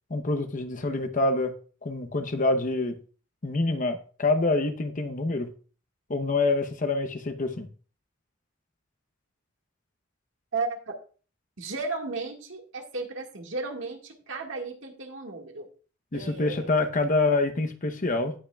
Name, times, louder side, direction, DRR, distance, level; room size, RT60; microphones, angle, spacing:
voice 1, 0.1-1.5 1.8-2.9 3.4-5.5 6.1-7.7 16.1-18.3, left 2 dB, 40° left, 0.8 m, -26 dB
voice 2, 10.5-10.9 11.6-15.7 16.1-16.7, right 3 dB, 70° right, 1.8 m, -34 dB
17.0 x 5.7 x 2.3 m
head